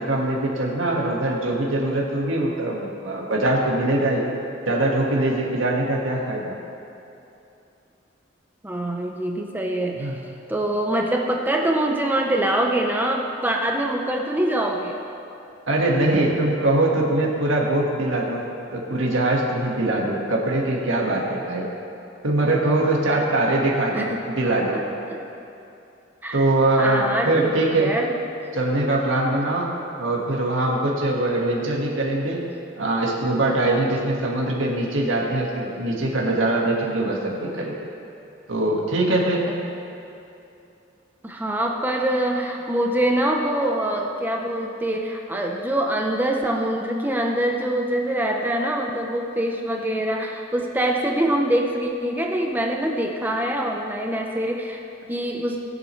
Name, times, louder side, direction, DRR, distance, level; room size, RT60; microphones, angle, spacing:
voice 1, 0.0-4.3 4.7-6.5 10.0-10.1 15.7-18.5 18.7-21.7 22.2-24.8 26.3-28.0 28.5-29.7 30.0-32.4 32.8-37.8 38.5-39.5, right 2 dB, 90° right, -3 dB, 1.7 m, -22 dB
voice 2, 8.6-10.1 10.5-15.0 23.1-23.2 23.9-24.2 24.7-25.2 26.2-26.5 26.8-27.5 27.8-28.2 41.2-54.8 55.1-55.6, right 1 dB, 10° right, 0 dB, 0.7 m, -24 dB
20.0 x 8.1 x 3.2 m, 2.8 s
head